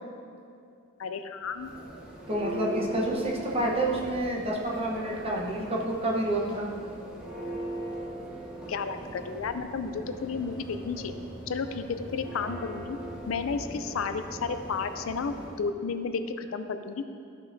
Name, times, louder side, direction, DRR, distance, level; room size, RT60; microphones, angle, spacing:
voice 1, 1.0-1.7 8.7-11.2 11.5-13.0 13.3-17.1, left 5 dB, 90° left, 9 dB, 0.4 m, -32 dB
Church bell, 1.4-15.7, right 1 dB, 5° right, 0.9 m, -40 dB
voice 2, 2.3-6.7, right 1 dB, 30° right, -3 dB, 1.0 m, -28 dB
13.0 x 5.4 x 2.7 m, 2.5 s
head